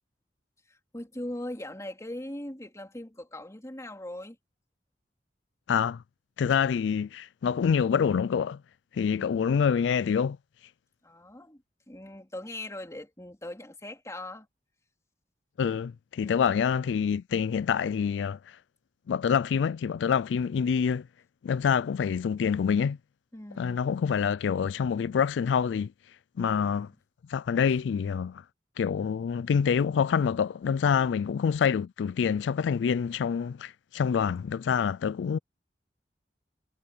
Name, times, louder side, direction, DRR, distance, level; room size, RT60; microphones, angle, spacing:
voice 1, 0.7-4.4 11.0-14.5 16.2-16.6 23.3-23.9 26.4-27.0, left 1 dB, 15° left, 3.1 m, -41 dB
voice 2, 5.7-6.0 6.4-8.6 8.9-10.4 15.6-18.6 19.1-21.0 21.4-23.0 23.6-25.9 26.4-26.9 27.3-28.4 28.8-35.4, left 7 dB, 90° left, 0.3 m, -26 dB
head